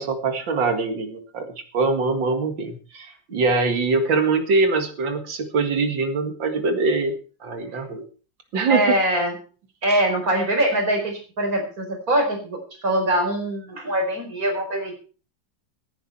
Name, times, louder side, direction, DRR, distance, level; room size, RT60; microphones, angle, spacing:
voice 1, 0.0-1.5 1.7-8.0 8.5-8.8, right 3 dB, 90° right, 7 dB, 2.7 m, -23 dB
voice 2, 8.7-9.3 9.8-14.9, right 1 dB, 50° right, 3 dB, 5.0 m, -23 dB
17.5 x 10.5 x 4.4 m, 0.38 s
omnidirectional pair, 2.0 m